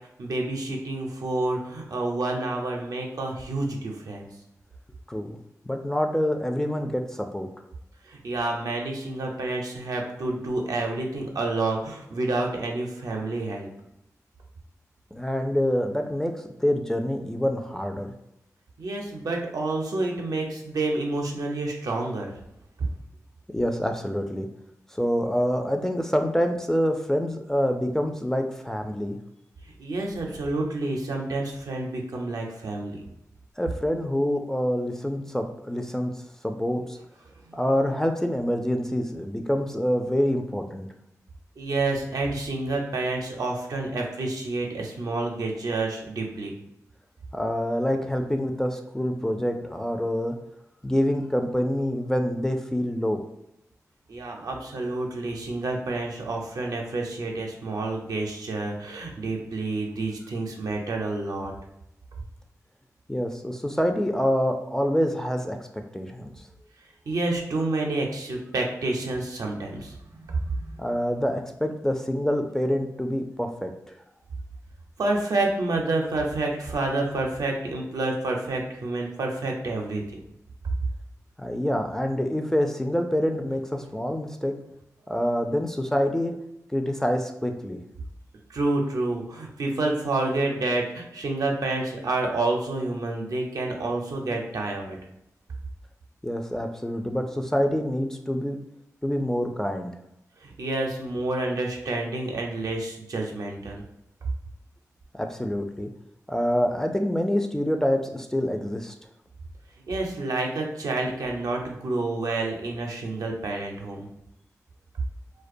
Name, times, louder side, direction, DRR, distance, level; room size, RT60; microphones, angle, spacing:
voice 1, 0.2-4.3 8.0-13.7 18.8-22.3 29.6-33.0 37.4-37.6 41.6-46.5 54.1-61.5 67.1-70.0 70.2-70.9 75.0-80.2 88.5-95.0 100.4-103.8 109.9-114.1, right 2 dB, 75° right, 0 dB, 0.5 m, -29 dB
voice 2, 5.7-7.5 15.1-18.1 23.5-24.5 24.9-29.2 33.6-36.1 36.4-37.0 37.5-40.9 47.3-50.4 50.8-53.2 63.1-65.6 65.9-66.3 70.8-73.7 81.4-84.5 85.1-86.3 86.7-87.8 96.2-98.6 99.0-100.0 105.1-105.9 106.3-108.9, equal, 10° left, 4 dB, 0.3 m, -26 dB
2.3 x 2.1 x 2.6 m, 0.84 s
cardioid pair, 40°, 6 cm